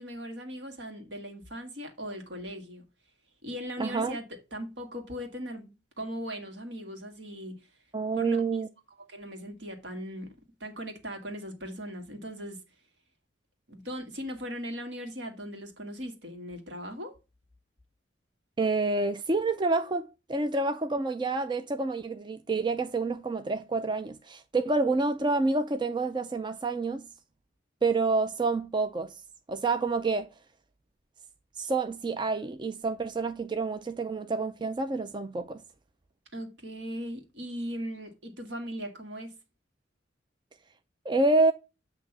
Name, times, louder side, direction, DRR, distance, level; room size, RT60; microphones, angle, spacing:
voice 1, 0.0-2.8 3.4-4.2 4.5-7.7 8.2-8.4 9.1-10.4 10.6-12.6 13.7-17.1 36.3-39.4, equal, 65° right, 1.8 m, -39 dB
voice 2, 3.8-4.2 7.9-8.7 18.6-27.1 27.8-29.2 29.5-30.3 31.6-35.6 41.1-41.5, right 3 dB, 25° right, 0.4 m, -28 dB
8.4 x 2.9 x 5.7 m
head